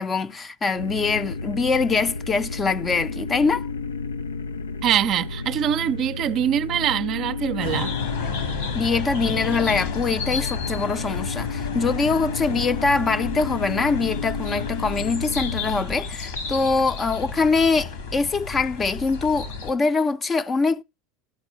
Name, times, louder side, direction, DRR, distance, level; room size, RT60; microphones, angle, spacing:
voice 1, 0.0-3.7 8.7-20.8, left 4 dB, 25° left, 0.5 m, -23 dB
sound 1, 0.8-15.9, left 4 dB, 85° left, 0.4 m, -32 dB
voice 2, 4.8-8.0, right 10 dB, 45° right, 0.4 m, -23 dB
sound 2, 7.6-19.7, left 5 dB, 70° left, 1.7 m, -32 dB
12.5 x 4.4 x 5.0 m
hypercardioid pair, 80°, 0 cm